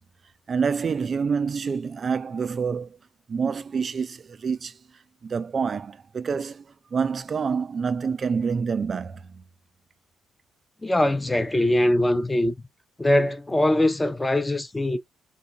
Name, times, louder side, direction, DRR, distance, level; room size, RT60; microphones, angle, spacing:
voice 1, 0.5-3.0 3.3-4.8 5.2-6.7 6.9-9.4, right 5 dB, 45° right, 0.3 m, -27 dB
voice 2, 10.8-12.5 13.0-15.0, left 1 dB, 15° left, 0.6 m, -22 dB
3.9 x 2.4 x 2.7 m
cardioid pair, 90°, 0 cm